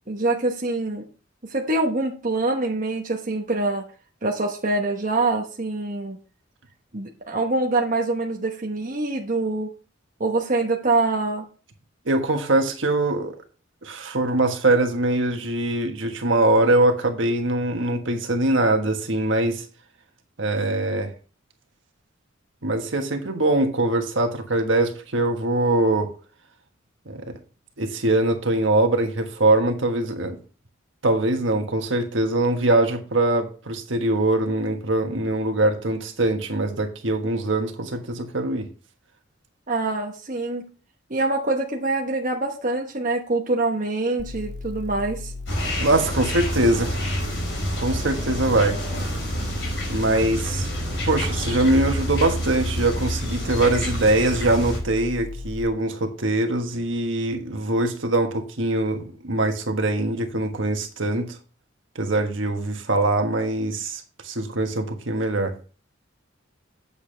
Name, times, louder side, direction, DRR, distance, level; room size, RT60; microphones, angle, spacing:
voice 1, 0.1-1.0 1.4-3.9 4.2-6.2 6.9-9.7 10.2-11.5 39.7-40.6 41.1-45.3, right 2 dB, 40° right, 0 dB, 1.0 m, -25 dB
voice 2, 12.1-13.4 13.8-19.6 20.4-21.1 22.6-26.1 27.1-27.2 27.8-30.4 31.0-38.7 45.8-47.0 47.8-48.8 49.9-50.7 51.0-61.3 61.9-65.5, right 2 dB, 65° right, 4 dB, 1.4 m, -22 dB
sound 1, 44.2-55.6, left 3 dB, 35° left, 1.5 m, -35 dB
sound 2, 45.5-54.8, equal, 65° left, 4.6 m, -28 dB
8.5 x 7.1 x 3.4 m, 0.37 s
head